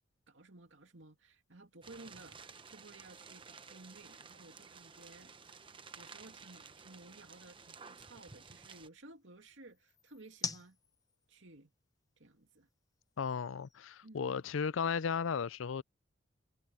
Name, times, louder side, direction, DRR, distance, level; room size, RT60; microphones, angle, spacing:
voice 1, 0.3-5.3 6.0-10.8 11.3-11.7 12.2-12.7 14.0-14.4, right 2 dB, 75° right, 2.4 m, -56 dB
sound 1, 0.6-14.9, left 4 dB, 20° left, 0.9 m, -52 dB
sound 2, 1.8-8.9, right 5 dB, 25° right, 0.9 m, -54 dB
voice 2, 13.2-15.8, left 6 dB, 90° left, 0.5 m, -35 dB
head